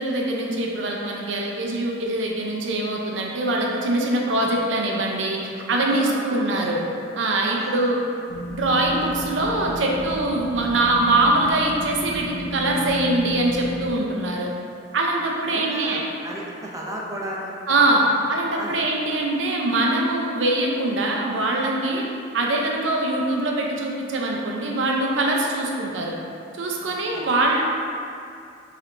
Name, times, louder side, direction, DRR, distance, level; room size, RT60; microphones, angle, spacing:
voice 1, 0.0-6.8 7.2-8.0 8.5-12.3 12.5-14.5 14.9-16.1 17.7-22.0 22.3-26.1 26.6-27.6, right 2 dB, 85° right, -1 dB, 0.6 m, -23 dB
voice 2, 5.9-6.7 7.4-7.9 15.5-17.5 18.0-18.1 18.6-18.8 26.8-27.3, right 1 dB, 20° right, -3 dB, 0.6 m, -35 dB
sound 1, 8.3-13.9, left 1 dB, 80° left, 0.6 m, -33 dB
5.7 x 3.3 x 2.6 m, 2.4 s
head